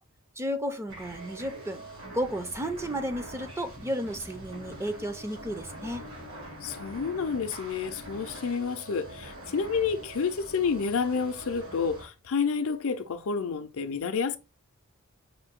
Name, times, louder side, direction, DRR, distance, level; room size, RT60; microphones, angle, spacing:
voice 1, 0.4-1.8 2.1-6.1, equal, 10° right, 0.5 m, -33 dB
sound 1, 0.9-12.1, right 1 dB, 65° right, 3.0 m, -44 dB
voice 2, 6.6-14.4, left 5 dB, 65° left, 0.5 m, -29 dB
5.1 x 2.6 x 3.6 m
head